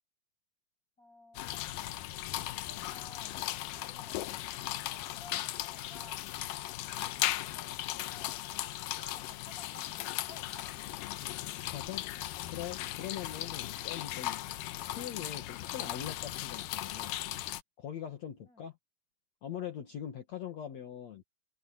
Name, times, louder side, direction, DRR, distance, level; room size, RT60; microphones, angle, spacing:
voice 1, 1.0-1.9 2.7-4.3 4.7-6.3 7.1-8.5 8.8-10.6 18.5-18.7, left 2 dB, 20° left, 7.1 m, -56 dB
sound 1, 1.3-17.6, left 15 dB, 75° left, 2.3 m, -37 dB
voice 2, 11.7-12.1 12.5-14.4 14.8-17.2 17.8-18.8 19.4-21.2, left 10 dB, 55° left, 2.6 m, -42 dB
omnidirectional pair, 4.3 m